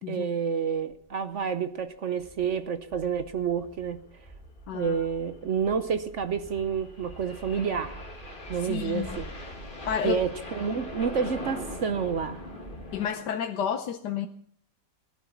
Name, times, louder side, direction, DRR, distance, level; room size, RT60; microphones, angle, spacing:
voice 1, 0.1-4.0 4.7-8.0 8.5-9.3 10.0-12.4, right 6 dB, 55° right, 11 dB, 1.0 m, -29 dB
sound 1, 0.9-1.1 1.4-1.5 1.8-1.9 2.4-2.7 4.0-13.3, left 1 dB, 30° left, 2.6 m, -42 dB
sound 2, 2.2-13.0, right 1 dB, 5° left, 4.5 m, -48 dB
voice 2, 4.7-5.1 8.6-9.2 9.9-10.2 12.9-14.3, left 8 dB, 75° left, 7 dB, 1.4 m, -31 dB
17.0 x 11.5 x 7.1 m, 0.62 s
omnidirectional pair, 1.8 m